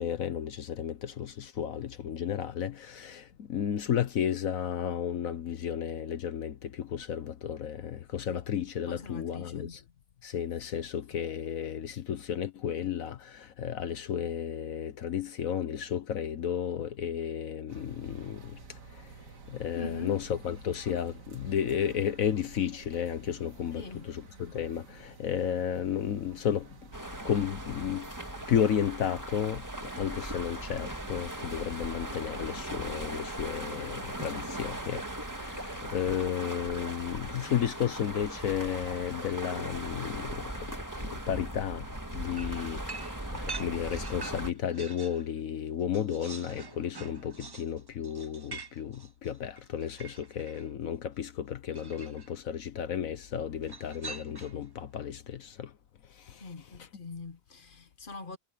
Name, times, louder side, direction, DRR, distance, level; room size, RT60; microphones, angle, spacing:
voice 1, 0.0-9.8 10.2-19.1 19.5-26.8 27.2-28.1 28.5-41.9 42.1-55.7 56.1-56.5 56.8-56.9, left 9 dB, 75° left, 1.4 m, -33 dB
voice 2, 8.9-9.7 19.8-20.2 23.7-24.1 56.4-58.4, left 4 dB, 40° left, 1.2 m, -42 dB
sound 1, 17.7-36.2, right 4 dB, 75° right, 2.2 m, -52 dB
sound 2, 26.9-44.5, right 1 dB, 15° right, 1.9 m, -39 dB
sound 3, 42.4-45.3 45.6-50.7 51.7-52.3 53.6-54.7, right 4 dB, 30° right, 0.4 m, -45 dB
omnidirectional pair, 1.4 m